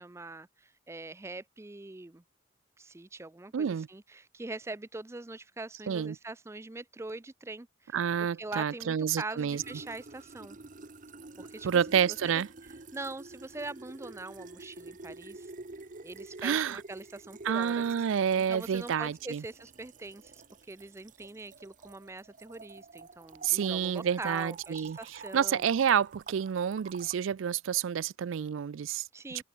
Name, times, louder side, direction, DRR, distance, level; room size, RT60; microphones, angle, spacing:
voice 1, 0.0-2.2 2.8-8.0 8.4-10.6 11.4-11.7 12.2-12.4 12.9-15.5 16.0-17.9 18.3-20.4 20.7-25.7 29.1-29.4, right 2 dB, 15° right, 0.4 m, -42 dB
voice 2, 3.5-3.9 5.9-6.2 7.9-9.6 11.6-12.5 16.4-16.8 17.4-19.4 23.4-25.0 25.3-29.0 29.3-29.4, right 8 dB, 85° right, 0.4 m, -29 dB
sound 1, 9.5-27.2, right 3 dB, 40° right, 1.0 m, -49 dB
head